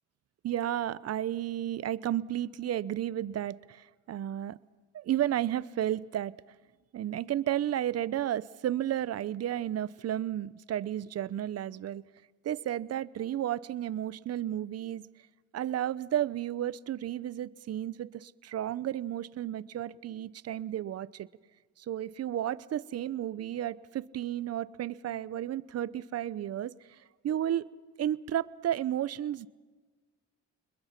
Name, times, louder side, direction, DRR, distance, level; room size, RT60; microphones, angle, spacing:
voice 1, 0.4-4.6 4.9-6.3 6.9-12.0 12.4-15.0 15.5-21.3 21.8-26.7 27.2-27.7 28.0-29.5, right 11 dB, 55° right, 19 dB, 0.7 m, -32 dB
28.5 x 21.5 x 5.9 m, 1.3 s
cardioid pair, 90°, 30 cm